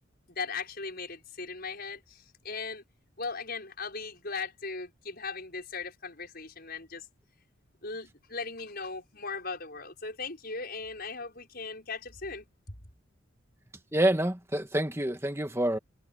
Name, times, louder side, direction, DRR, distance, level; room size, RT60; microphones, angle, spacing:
voice 1, 0.3-2.8 3.2-7.1 7.8-12.7, left 4 dB, 45° left, 6.4 m, -38 dB
voice 2, 13.9-15.8, right 1 dB, 10° right, 1.7 m, -27 dB
head